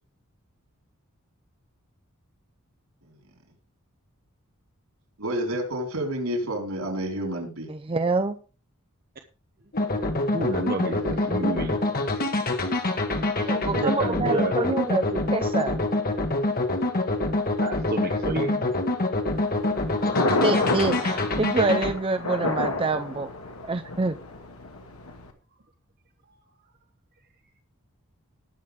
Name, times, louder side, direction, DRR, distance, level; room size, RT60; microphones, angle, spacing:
voice 1, 5.2-7.7, equal, 75° right, 2 dB, 4.6 m, -29 dB
voice 2, 7.7-8.4 13.4-15.8 20.4-23.3 23.7-24.2, right 3 dB, 25° right, 9 dB, 0.6 m, -26 dB
sound 1, 9.7-21.9, left 2 dB, 45° left, 1.7 m, -26 dB
voice 3, 9.9-12.0 13.3-14.8 17.1-17.2 17.6-18.7, right 2 dB, 45° right, 4 dB, 1.0 m, -31 dB
Thunder, 19.3-25.3, left 2 dB, 70° left, 2.1 m, -29 dB
19.5 x 6.5 x 3.7 m, 0.34 s
head